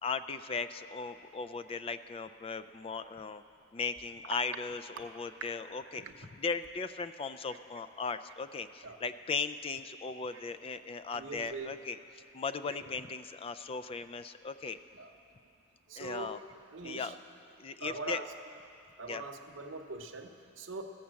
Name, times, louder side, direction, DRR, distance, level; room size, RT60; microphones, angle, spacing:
voice 1, 0.0-3.4 3.7-12.0 12.3-14.8 16.0-16.4 16.8-17.1 17.6-18.2 19.0-19.2, left 5 dB, 30° left, 12 dB, 0.3 m, -37 dB
voice 2, 11.1-11.7 12.6-12.8 14.9-15.1 15.9-16.4 16.7-17.1 17.8-18.3 19.0-20.8, right 3 dB, 70° right, 5 dB, 0.8 m, -42 dB
14.5 x 7.0 x 7.5 m, 2.7 s
head